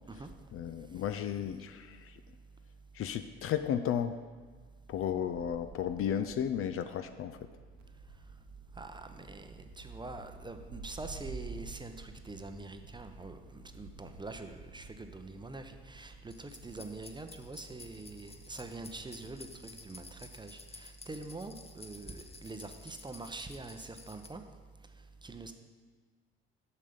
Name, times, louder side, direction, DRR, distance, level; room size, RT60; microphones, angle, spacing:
voice 1, 0.5-2.2 2.9-4.2 4.9-7.4, left 9 dB, 45° left, 10 dB, 0.5 m, -34 dB
sound 1, 5.3-20.3, right 3 dB, 60° right, 1.0 m, -51 dB
voice 2, 8.8-24.4 25.2-25.5, right 3 dB, 15° right, 7 dB, 0.7 m, -45 dB
sound 2, 16.3-24.3, left 3 dB, 20° left, 0.8 m, -53 dB
6.9 x 6.5 x 5.1 m, 1.5 s
hypercardioid pair, 55°, 32 cm